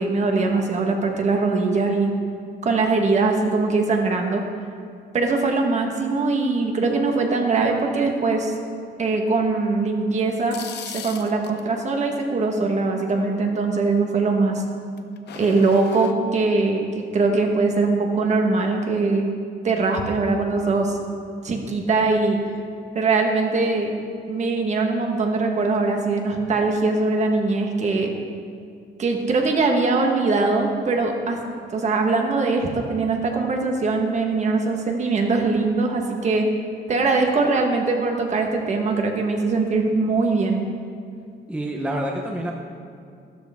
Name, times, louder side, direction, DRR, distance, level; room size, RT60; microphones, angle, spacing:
voice 1, 0.0-2.1 2.6-4.4 5.1-8.6 9.0-14.6 15.3-19.3 19.6-21.0 21.4-22.4 22.9-23.9 24.3-28.1 29.0-31.4 31.7-36.5 36.9-40.7, right 3 dB, 40° right, 2 dB, 1.4 m, -21 dB
sound 1, 10.2-11.7 15.0-16.1, left 9 dB, 75° left, 0.7 m, -37 dB
voice 2, 41.5-42.5, right 1 dB, 5° right, 0 dB, 0.8 m, -27 dB
14.0 x 13.0 x 3.6 m, 2.3 s
wide cardioid pair, 175°, 18 cm